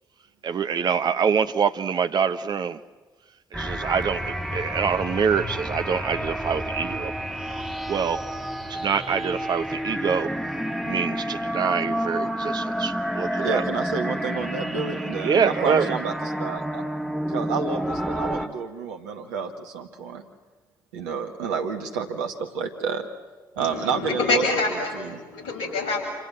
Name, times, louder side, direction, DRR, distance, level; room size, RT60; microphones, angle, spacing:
voice 1, 0.4-2.8 3.5-7.1 7.4-8.3 8.7-10.3 10.8-13.6 15.2-15.9, right 6 dB, 45° right, 1.2 m, -25 dB
sound 1, 3.5-18.5, equal, ahead, 2.1 m, -30 dB
voice 2, 13.4-16.8 17.3-20.2 20.9-23.1 23.6-24.4 24.9-25.2, right 6 dB, 70° right, 1.8 m, -30 dB
voice 3, 23.6-26.0, left 3 dB, 60° left, 6.6 m, -26 dB
28.0 x 28.0 x 7.6 m
figure-of-eight pair, 40°, 10 cm